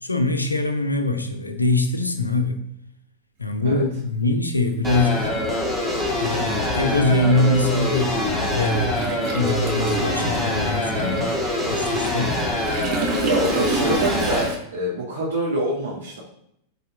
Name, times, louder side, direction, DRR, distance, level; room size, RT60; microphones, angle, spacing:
voice 1, 0.0-2.6 3.4-5.3 6.2-9.0 9.3-11.3 11.7-12.4, left 2 dB, 85° left, 7 dB, 0.8 m, -23 dB
Toilet flush, 4.1-4.2 5.4-5.6 5.9-14.6, right 4 dB, 40° right, 1.5 m, -32 dB
sound 1, 4.8-14.4, left 1 dB, 5° right, 2.4 m, -24 dB
voice 2, 13.2-16.2, right 1 dB, 70° right, -6 dB, 1.9 m, -25 dB
8.6 x 4.1 x 3.8 m, 0.76 s
figure-of-eight pair, 90°, 0 cm